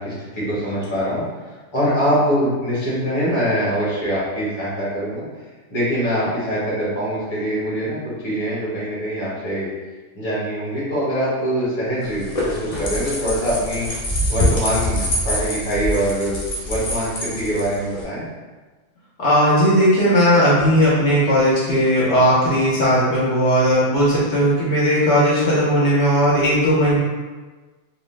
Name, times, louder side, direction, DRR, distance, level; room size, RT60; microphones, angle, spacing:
voice 1, 0.0-5.2 5.7-9.7 10.1-13.9 14.3-16.4 16.7-18.2, equal, 25° left, -9 dB, 1.0 m, -23 dB
sound 1, 12.0-18.0, equal, 50° left, 0.4 m, -25 dB
voice 2, 19.2-27.0, equal, 70° left, -7 dB, 1.0 m, -17 dB
2.7 x 2.0 x 3.1 m, 1.3 s
omnidirectional pair, 1.2 m